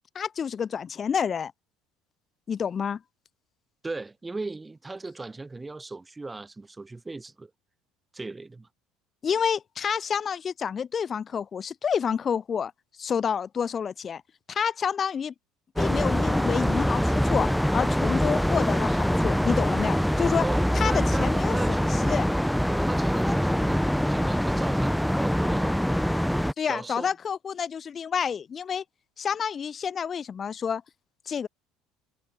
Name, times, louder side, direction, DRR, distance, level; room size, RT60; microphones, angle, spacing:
voice 1, 0.1-1.5 2.5-3.0 9.2-12.7 13.0-14.2 14.5-15.3 15.8-20.4 20.7-21.6 22.0-22.3 26.6-28.8 29.2-30.8 31.3-31.5, left 7 dB, 35° left, 0.4 m, -29 dB
voice 2, 3.8-7.5 8.1-8.7 20.4-21.8 22.7-25.8 26.7-27.1, right 3 dB, 15° right, 2.4 m, -37 dB
sound 1, 15.8-26.5, equal, ahead, 0.7 m, -24 dB
hypercardioid pair, 65°, 0 cm